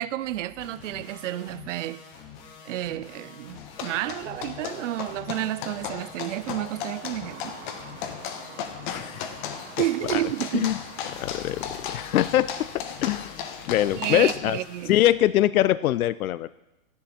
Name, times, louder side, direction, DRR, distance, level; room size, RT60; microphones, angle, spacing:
voice 1, 0.0-2.0 2.7-7.5 9.8-10.7 13.9-14.9, right 14 dB, 60° right, 0.5 m, -30 dB
sound 1, 0.6-14.9, left 7 dB, 10° left, 0.5 m, -47 dB
sound 2, 3.6-14.3, left 8 dB, 35° left, 1.1 m, -36 dB
sound 3, 7.2-12.2, right 7 dB, 20° right, 0.8 m, -47 dB
voice 2, 8.9-9.5 10.1-10.2 10.5-10.8 11.1-13.4 13.7-14.6 14.9-16.5, left 13 dB, 85° left, 0.5 m, -23 dB
14.0 x 10.5 x 4.3 m
hypercardioid pair, 150°, 42 cm